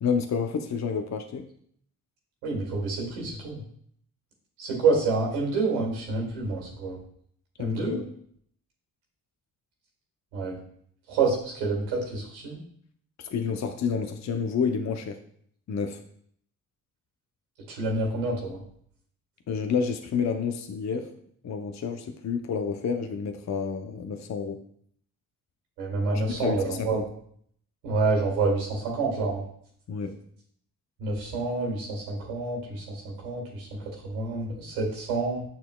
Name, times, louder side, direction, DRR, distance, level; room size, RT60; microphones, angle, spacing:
voice 1, 0.0-1.5 7.6-8.1 13.2-15.2 15.7-16.0 19.5-21.1 21.4-24.6 26.1-27.1 29.9-30.1, left 6 dB, 40° left, 5 dB, 0.7 m, -29 dB
voice 2, 2.4-3.6 4.6-7.0 7.6-8.0 10.3-10.6 11.1-12.6 17.7-18.6 25.8-27.0 27.8-29.4 31.0-33.7 34.0-35.5, right 3 dB, 90° right, -2 dB, 1.9 m, -28 dB
6.6 x 6.3 x 2.3 m, 0.64 s
hypercardioid pair, 50°, 42 cm